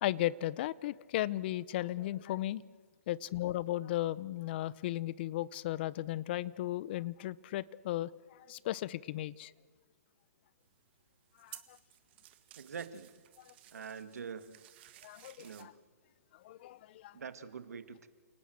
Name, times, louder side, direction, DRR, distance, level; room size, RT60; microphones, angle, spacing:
voice 1, 0.0-2.6 3.1-9.5 11.4-11.8 13.5-13.6 15.0-15.7 16.4-17.2, left 15 dB, 40° left, 21 dB, 0.7 m, -36 dB
sound 1, 10.6-15.6, right 14 dB, 40° right, 1.8 m, -56 dB
voice 2, 12.6-13.1 13.7-14.6 15.4-15.7 17.1-18.1, right 6 dB, 80° right, 11 dB, 1.9 m, -44 dB
29.0 x 19.0 x 7.8 m, 1.5 s
hypercardioid pair, 145°, 8 cm